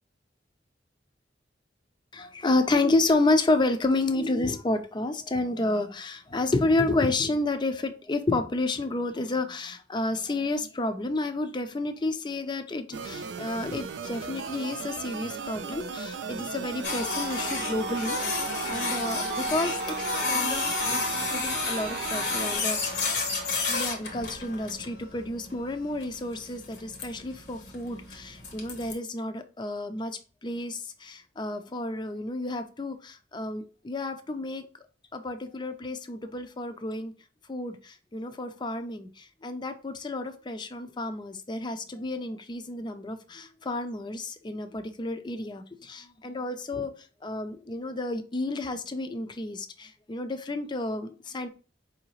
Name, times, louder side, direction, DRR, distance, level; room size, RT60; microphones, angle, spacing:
voice 1, 2.1-18.2 18.6-23.1 23.7-34.6 35.1-37.1 37.5-46.9 47.2-51.5, left 2 dB, 25° left, 9 dB, 0.5 m, -30 dB
sound 1, 12.9-22.6, right 5 dB, 90° right, 0.4 m, -37 dB
Printer, 16.8-28.9, left 3 dB, 70° left, 1.0 m, -31 dB
4.8 x 2.8 x 3.0 m, 0.36 s
head